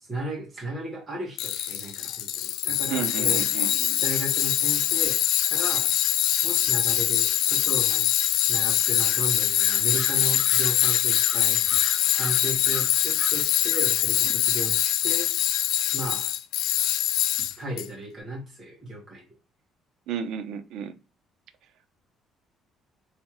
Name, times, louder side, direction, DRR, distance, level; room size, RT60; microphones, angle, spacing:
voice 1, 0.0-3.5 4.0-5.2 5.5-5.9 6.4-8.1 8.4-11.8 12.1-15.3 15.9-16.3 17.4-19.3, right 1 dB, 25° right, 1.6 m, -35 dB
Tools, 1.4-17.8, left 12 dB, 90° left, 0.3 m, -23 dB
voice 2, 2.9-4.0 20.1-20.9, right 8 dB, 70° right, 0.5 m, -32 dB
Bird vocalization bird call bird song, 8.8-9.2 9.6-13.4 13.7-13.9, equal, ahead, 0.4 m, -41 dB
3.6 x 3.2 x 3.0 m
cardioid pair, 165°, 0 cm